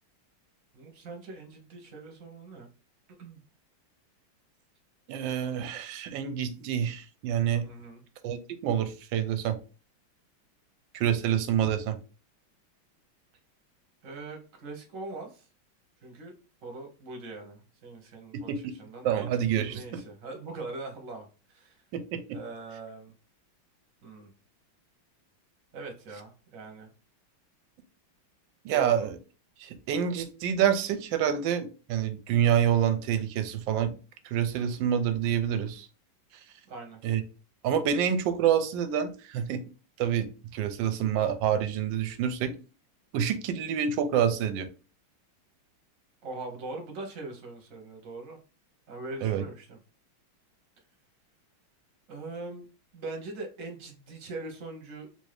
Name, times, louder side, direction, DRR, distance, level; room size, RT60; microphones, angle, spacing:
voice 1, 0.7-2.7 3.2-3.4 7.6-8.0 14.0-15.5 16.0-16.3 16.6-18.5 18.8-21.8 22.3-23.1 24.0-24.3 25.7-26.9 28.7-29.1 36.7-37.0 46.2-48.4 48.9-49.8 52.1-52.6 52.9-55.1, right 3 dB, 50° right, 2 dB, 1.1 m, -41 dB
voice 2, 5.1-7.7 8.2-9.6 10.9-12.0 18.3-18.8 19.0-20.0 21.9-22.4 28.6-29.2 29.6-33.9 34.2-35.9 37.0-37.2 37.6-39.6 40.0-40.3 40.5-42.5 43.1-44.7 49.2-49.4, right 9 dB, 75° right, 8 dB, 1.2 m, -27 dB
3.6 x 2.6 x 3.2 m, 0.34 s
omnidirectional pair, 2.2 m